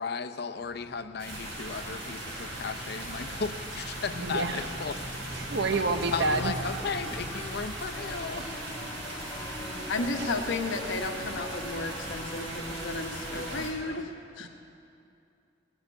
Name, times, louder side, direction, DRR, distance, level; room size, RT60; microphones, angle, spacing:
voice 1, 0.0-5.0 6.1-8.6 13.3-14.0, left 5 dB, 55° left, 9 dB, 0.7 m, -36 dB
sound 1, 0.6-13.6, right 1 dB, ahead, 0.9 m, -45 dB
sound 2, 1.2-13.7, right 1 dB, 90° right, 4.5 m, -39 dB
voice 2, 4.2-4.7 5.3-6.6 10.2-10.3, right 3 dB, 60° right, 7 dB, 0.9 m, -28 dB
Singing / Musical instrument, 7.9-13.5, equal, 20° left, 1.1 m, -42 dB
voice 3, 9.9-14.5, left 3 dB, 85° left, 4 dB, 1.3 m, -33 dB
19.0 x 6.8 x 9.5 m, 2.7 s
head